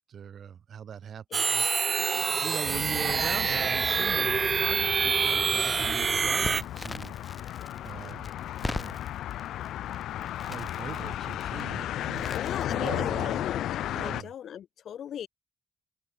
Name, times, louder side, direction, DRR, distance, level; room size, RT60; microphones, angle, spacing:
voice 1, 0.0-1.7 2.4-7.1 7.8-8.3 8.6-9.0 10.4-13.4 13.9-14.3, right 8 dB, 60° right, 4.3 m, -40 dB
sound 1, 1.3-6.6, right 5 dB, 40° right, 0.9 m, -26 dB
sound 2, 2.6-14.2, left 12 dB, 85° left, 2.6 m, -35 dB
Crackle, 6.4-13.3, left 3 dB, 25° left, 6.8 m, -42 dB
voice 2, 12.3-13.7 14.0-15.3, left 9 dB, 70° left, 0.7 m, -38 dB
open air
cardioid pair, 90°, 0 cm